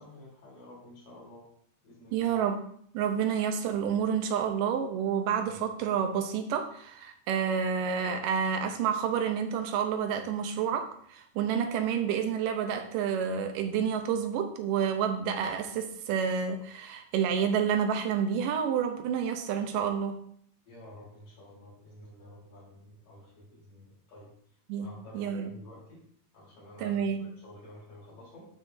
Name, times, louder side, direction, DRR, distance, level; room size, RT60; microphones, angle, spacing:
voice 1, 0.0-1.5 1.8-2.3 20.7-24.3 24.8-26.0 26.3-28.5, left 1 dB, 80° left, -6 dB, 5.5 m, -50 dB
voice 2, 2.1-2.6 2.9-20.2 24.7-24.9 25.1-25.5 26.8-27.3, right 7 dB, 85° right, 6 dB, 2.5 m, -29 dB
11.0 x 5.8 x 2.7 m, 0.63 s
omnidirectional pair, 3.7 m